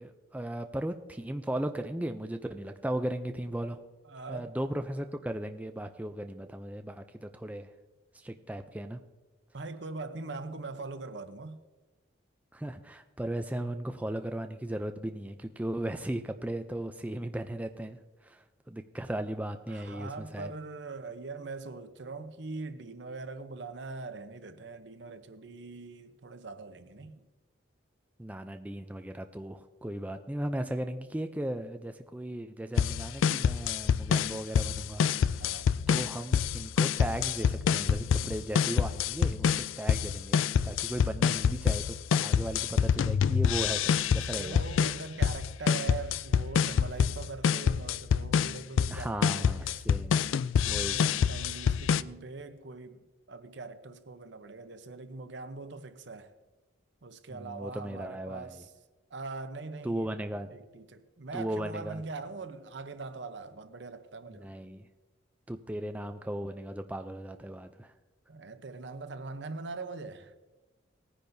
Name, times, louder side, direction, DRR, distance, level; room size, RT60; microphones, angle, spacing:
voice 1, 0.0-3.8 4.3-7.7 8.1-9.0 12.5-20.5 28.2-35.6 35.9-44.6 48.9-50.2 50.6-51.2 57.3-58.6 59.8-60.5 61.3-62.0 64.3-64.9 65.5-67.9, right 1 dB, 10° right, 0.4 m, -36 dB
voice 2, 4.1-4.5 9.5-11.6 19.7-27.3 35.4-35.7 44.1-49.8 50.9-56.3 57.0-58.7 59.1-60.1 60.5-64.5 68.3-70.4, right 3 dB, 65° right, 0.8 m, -42 dB
sound 1, 32.8-52.0, left 7 dB, 85° left, 0.3 m, -27 dB
19.0 x 10.0 x 2.7 m
head